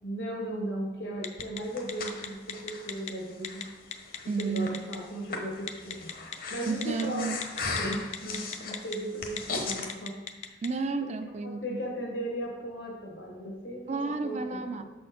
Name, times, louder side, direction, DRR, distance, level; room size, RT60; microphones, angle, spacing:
voice 1, 0.0-3.6 4.4-6.1 6.5-7.3 7.6-10.1 10.5-10.6 11.0-11.1 11.4-14.6, right 1 dB, 80° left, -1 dB, 1.4 m, -36 dB
Telephone, 1.2-1.6 1.9-3.1 3.4-3.6 3.9-5.0 5.7-6.4 6.8-7.0 7.4-9.0 9.3-9.4 9.7-10.7, left 8 dB, 35° left, 0.4 m, -36 dB
Breathing, 1.4-9.9, left 3 dB, 55° left, 0.8 m, -38 dB
voice 2, 4.3-4.7 6.7-7.4 10.6-11.6 13.9-14.8, right 4 dB, 40° right, 9 dB, 0.4 m, -31 dB
6.4 x 4.3 x 5.1 m, 1.1 s
head